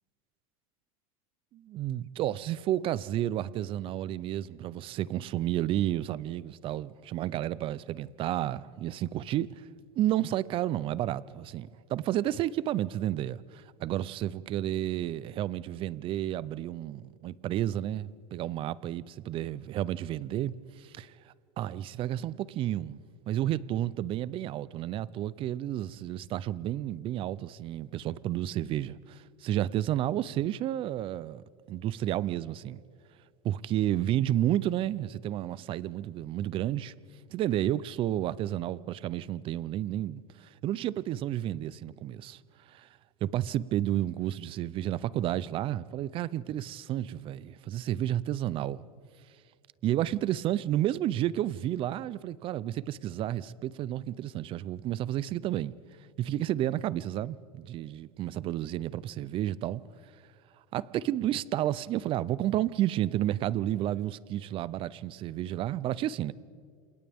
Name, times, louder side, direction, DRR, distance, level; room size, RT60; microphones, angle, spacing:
voice 1, 1.5-9.7 10.0-32.8 33.4-36.9 37.3-42.4 42.7-42.9 43.2-48.8 49.8-55.7 56.2-59.8 60.7-66.3, right 12 dB, 30° right, 0.5 m, -31 dB
29.0 x 28.0 x 3.5 m
supercardioid pair, 150°, 18 cm